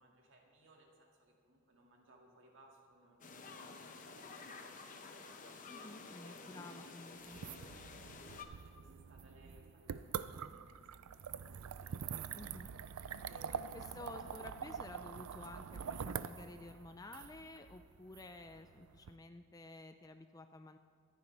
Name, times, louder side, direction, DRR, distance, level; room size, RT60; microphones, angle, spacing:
voice 1, 0.0-5.6 6.2-7.2 8.1-12.0 13.3-14.4, right 1 dB, 60° right, 0 dB, 2.1 m, -64 dB
sound 1, 3.2-8.5, left 4 dB, 35° left, 0.8 m, -51 dB
voice 2, 5.7-7.4 12.4-12.7 13.7-20.8, left 2 dB, 15° left, 8 dB, 0.3 m, -52 dB
sound 2, 7.2-19.1, right 7 dB, 80° right, 0.4 m, -45 dB
23.5 x 10.0 x 3.4 m, 2.2 s
head